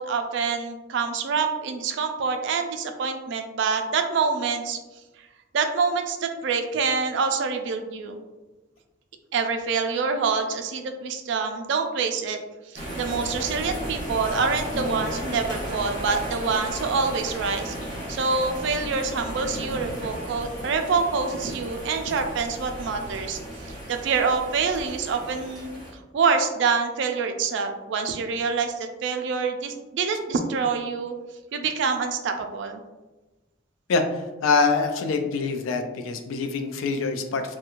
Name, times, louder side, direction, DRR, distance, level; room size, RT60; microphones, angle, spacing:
voice 1, 0.0-4.8 5.5-8.2 9.3-12.4 12.7-17.7 18.1-23.4 23.7-31.2 31.5-32.8, right 5 dB, 65° right, 6 dB, 0.3 m, -26 dB
sound 1, 12.7-25.9, equal, 40° left, 1.0 m, -34 dB
voice 2, 34.4-37.4, left 4 dB, 85° left, 6 dB, 0.4 m, -24 dB
2.9 x 2.2 x 2.4 m, 1.1 s
head